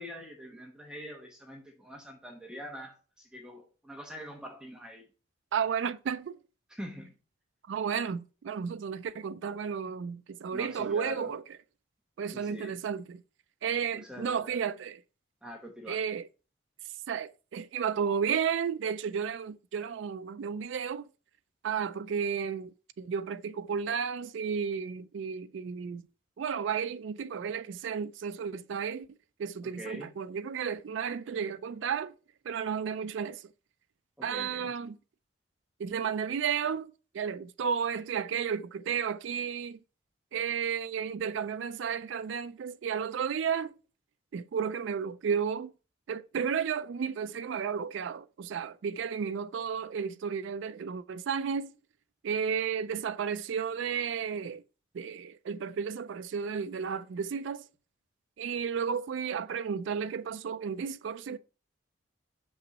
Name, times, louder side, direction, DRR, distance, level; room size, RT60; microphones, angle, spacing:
voice 1, 0.0-5.0 6.7-7.1 10.5-11.3 12.3-12.8 13.9-14.6 15.4-16.0 29.7-30.1 34.2-34.7, equal, 5° right, 1.0 m, -44 dB
voice 2, 5.5-6.4 7.7-11.4 12.2-13.2 13.6-15.0 15.9-16.3 17.1-21.1 21.6-26.1 26.4-29.1 29.4-32.2 32.4-33.5 34.2-35.0 35.8-39.8 40.3-43.7 44.3-45.7 46.1-51.8 52.2-54.6 54.9-57.6 58.4-61.4, right 7 dB, 70° right, 0.3 m, -33 dB
6.1 x 5.5 x 4.0 m
head